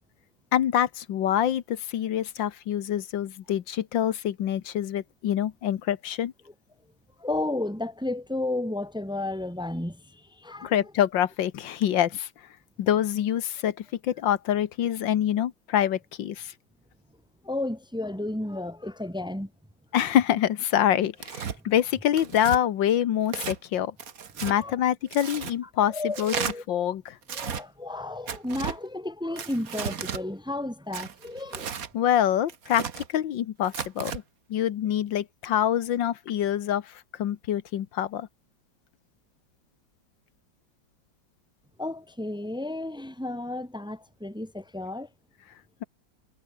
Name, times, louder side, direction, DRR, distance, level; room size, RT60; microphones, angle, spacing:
voice 1, 0.5-6.3 10.6-12.3 12.8-16.5 19.9-23.9 24.4-26.3 26.7-27.2 31.9-34.2 34.5-38.3, left 10 dB, 80° left, 1.8 m, -26 dB
voice 2, 7.2-10.8 17.4-19.5 24.4-24.7 25.9-26.6 27.3-31.7 41.8-45.1, left 2 dB, 5° right, 1.4 m, -33 dB
Tearing, 21.2-21.6 22.2-22.6 23.3-23.6 24.0-24.6 25.1-25.5 26.1-26.5 27.2-27.6 28.3-28.8 29.4-30.2 30.9-31.9 32.5-33.1 33.6-34.2, right 7 dB, 50° right, 1.7 m, -34 dB
omnidirectional pair, 2.0 m